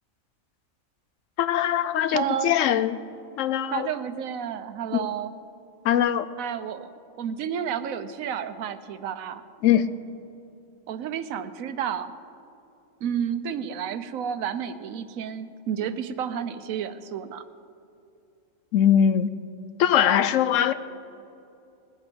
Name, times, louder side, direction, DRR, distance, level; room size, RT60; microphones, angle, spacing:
voice 1, 1.4-3.0 3.4-3.9 4.9-5.1 5.8-6.3 9.6-9.9 18.7-19.3 19.8-20.7, left 10 dB, 70° left, 13 dB, 0.9 m, -21 dB
voice 2, 2.1-2.6 3.7-5.3 6.4-9.4 10.9-12.1 13.0-17.4, right 8 dB, 90° right, 12 dB, 1.1 m, -31 dB
19.5 x 8.3 x 5.3 m, 2.7 s
omnidirectional pair, 1.4 m